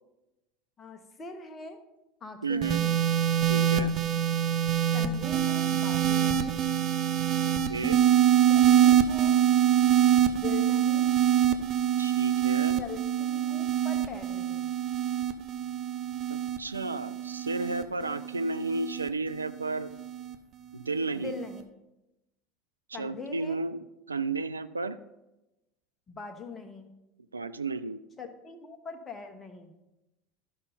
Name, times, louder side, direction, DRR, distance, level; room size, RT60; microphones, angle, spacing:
voice 1, 0.8-1.8 2.2-3.0 4.9-6.6 8.5-9.4 10.3-11.1 12.8-14.7 21.1-21.6 22.9-23.6 26.1-26.9 28.2-29.7, left 4 dB, 25° left, 6 dB, 1.2 m, -42 dB
voice 2, 2.4-2.8 3.5-3.9 7.4-8.0 12.0-12.8 16.3-19.9 20.7-21.4 22.9-25.0 27.3-28.0, right 3 dB, 80° right, 12 dB, 0.3 m, -33 dB
sound 1, 2.6-19.1 20.0-20.3, right 10 dB, 40° right, 0.7 m, -25 dB
13.0 x 5.5 x 4.1 m, 0.95 s
figure-of-eight pair, 70°, 0 cm